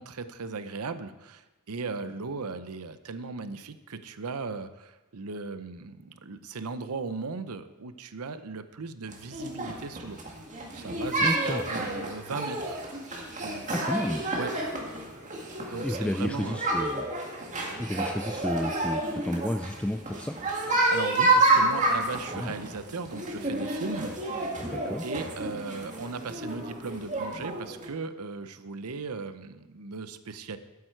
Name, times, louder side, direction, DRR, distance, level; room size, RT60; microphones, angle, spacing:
voice 1, 0.0-10.2 10.7-12.8 13.4-13.9 14.4-14.5 15.6-16.6 20.9-24.6 25.0-30.6, right 4 dB, 80° right, 11 dB, 0.7 m, -37 dB
sound 1, 9.1-27.9, right 2 dB, 35° right, 1.9 m, -29 dB
voice 2, 11.2-11.6 13.7-14.3 15.8-17.1 17.8-20.3 22.3-22.5 24.6-25.0, left 1 dB, 5° left, 7 dB, 0.3 m, -31 dB
12.5 x 8.6 x 4.5 m, 1.1 s
head